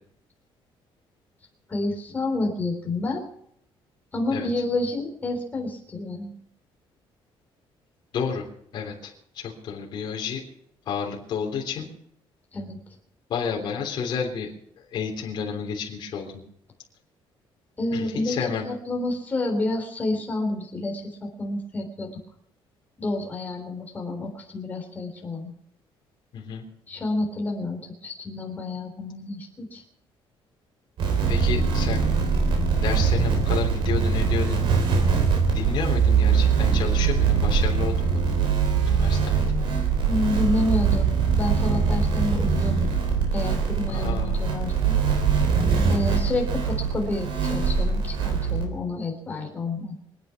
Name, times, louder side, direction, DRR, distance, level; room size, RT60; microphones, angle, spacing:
voice 1, 1.7-3.2 4.1-6.3 12.5-12.8 17.8-18.4 18.6-21.1 21.4-22.2 23.0-25.5 26.9-29.8 40.1-42.9 43.3-45.0 45.9-50.0, left 2 dB, 15° left, 1 dB, 3.6 m, -29 dB
voice 2, 8.1-8.5 8.7-10.4 10.8-11.9 13.3-14.5 14.9-16.4 17.9-18.7 26.3-26.6 31.3-32.1 32.8-34.6 35.5-38.2 38.5-38.6 38.8-39.7 43.9-44.4, left 6 dB, 50° left, -1 dB, 3.4 m, -31 dB
sound 1, 31.0-48.6, right 5 dB, 60° right, 3.8 m, -22 dB
25.0 x 9.4 x 5.9 m, 0.68 s
cardioid pair, 175°, 10 cm